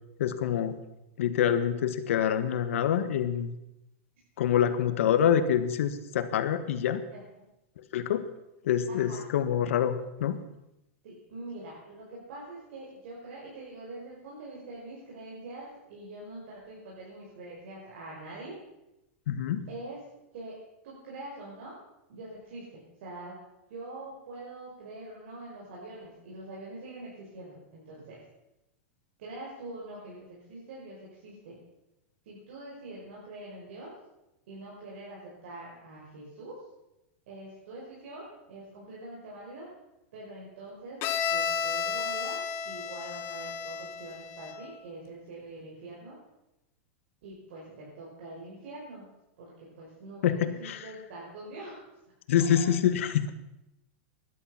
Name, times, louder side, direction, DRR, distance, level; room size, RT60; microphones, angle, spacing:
voice 1, 0.2-0.8 1.2-3.5 4.4-7.0 7.9-8.3 8.6-10.4 19.3-19.7 50.2-50.8 52.3-53.3, left 9 dB, 75° left, 11 dB, 1.5 m, -26 dB
voice 2, 8.9-9.2 11.0-18.6 19.7-20.0 20.3-20.6 20.8-21.8 22.1-23.3 23.7-28.2 29.2-31.6 32.2-33.9 34.5-36.6 37.3-39.7 40.1-41.0 41.3-46.2 47.2-49.1 49.4-51.8 52.6-52.7, right 2 dB, 60° right, -5 dB, 5.5 m, -44 dB
Bowed string instrument, 41.0-44.7, left 7 dB, 30° left, 1.1 m, -32 dB
17.0 x 11.5 x 5.8 m, 0.91 s
supercardioid pair, 170°, 7 cm